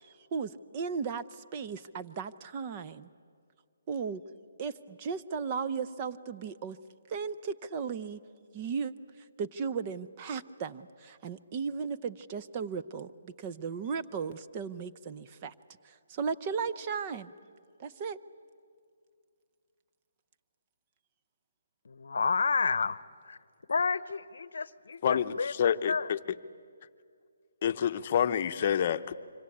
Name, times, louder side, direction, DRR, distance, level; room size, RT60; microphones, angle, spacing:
voice 1, 0.0-3.1 3.9-4.2 4.6-6.8 7.1-8.2 8.5-8.9 9.4-15.5 15.8-17.3 17.8-18.2, right 6 dB, 25° right, 11 dB, 0.7 m, -36 dB
voice 2, 21.8-23.4 23.7-25.5 25.9-26.1, left 4 dB, 75° left, 19 dB, 0.8 m, -30 dB
voice 3, 25.0-26.2 27.6-29.1, left 8 dB, 40° left, 10 dB, 0.8 m, -28 dB
25.5 x 25.0 x 8.6 m, 2.2 s
hypercardioid pair, 160°, 0 cm